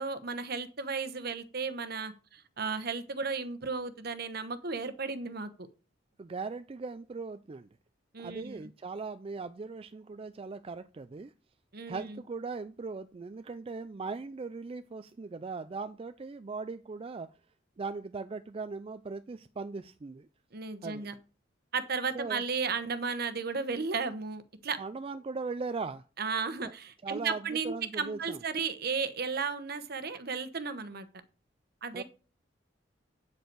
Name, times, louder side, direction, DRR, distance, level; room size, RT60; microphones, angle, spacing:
voice 1, 0.0-5.5 8.1-8.6 11.7-12.2 20.5-21.1 21.7-24.8 26.2-31.1 31.8-32.0, right 5 dB, 60° right, 1.0 m, -34 dB
voice 2, 6.2-7.7 8.2-11.3 11.9-17.3 17.8-20.3 20.8-21.1 22.1-22.4 24.8-26.0 26.6-26.7 27.0-28.4 31.9-32.0, right 4 dB, 30° right, 0.4 m, -39 dB
8.4 x 7.8 x 4.6 m
head